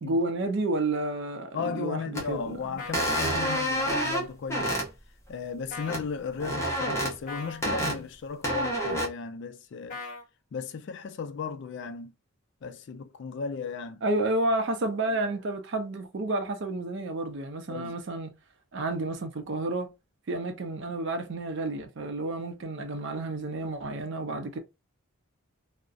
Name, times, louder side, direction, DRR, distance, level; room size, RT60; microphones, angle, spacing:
voice 1, 0.0-2.8 14.0-18.3 18.7-19.9 20.3-24.6, right 2 dB, 55° right, 0.5 m, -30 dB
voice 2, 1.5-4.8 5.3-10.0 10.5-12.1 12.6-14.0 17.7-17.9, left 5 dB, 55° left, 0.3 m, -35 dB
sound 1, 2.1-2.3 2.9-4.9 5.9-6.0 6.4-7.1 7.6-8.0 8.4-9.1, right 1 dB, 15° left, 0.6 m, -28 dB
sound 2, 2.8-4.0 5.7-6.0 7.3-7.6 9.9-10.2, left 4 dB, 35° left, 1.1 m, -39 dB
2.6 x 2.0 x 2.3 m
head